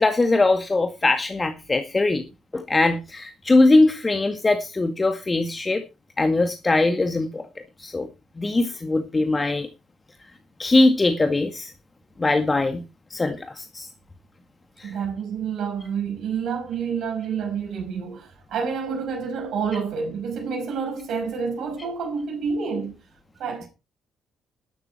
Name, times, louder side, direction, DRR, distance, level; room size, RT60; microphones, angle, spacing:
voice 1, 0.0-2.3 2.5-5.8 6.2-7.5 7.8-8.1 8.4-9.7 10.6-11.7 12.2-12.8 13.1-13.9 14.8-14.9, left 2 dB, 25° left, 2.0 m, -21 dB
voice 2, 14.8-23.0 23.4-23.7, right 6 dB, 55° right, 5.4 m, -28 dB
13.0 x 12.0 x 4.4 m
figure-of-eight pair, 40°, 0 cm